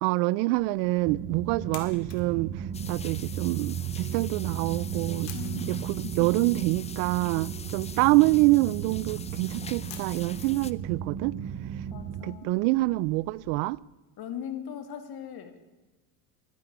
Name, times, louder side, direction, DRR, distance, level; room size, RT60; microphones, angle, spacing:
voice 1, 0.0-5.3 5.6-11.4 12.2-13.8, right 21 dB, 70° right, 0.5 m, -26 dB
sound 1, 0.5-13.6, left 8 dB, 75° left, 2.2 m, -53 dB
sound 2, 1.1-12.2, right 9 dB, 35° right, 0.8 m, -35 dB
sound 3, 2.7-10.7, left 6 dB, 15° left, 0.4 m, -45 dB
voice 2, 5.3-6.5 11.9-12.6 14.2-15.6, left 8 dB, 50° left, 2.2 m, -39 dB
11.5 x 11.5 x 9.4 m
supercardioid pair, 100°, 49 cm